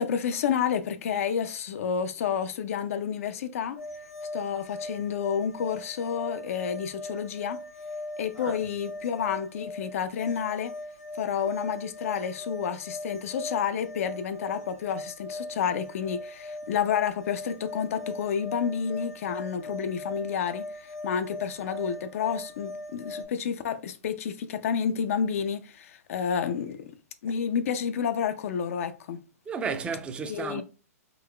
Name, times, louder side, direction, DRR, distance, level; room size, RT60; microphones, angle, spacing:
voice 1, 0.0-3.8 4.3-7.6 8.2-10.7 11.2-26.9 27.2-29.2 30.2-30.6, left 7 dB, 60° left, 0.4 m, -30 dB
sound 1, 3.8-23.2, left 1 dB, 85° left, 1.5 m, -39 dB
voice 2, 29.5-30.6, right 5 dB, 10° right, 0.4 m, -33 dB
3.8 x 2.8 x 2.2 m
hypercardioid pair, 125°, 9 cm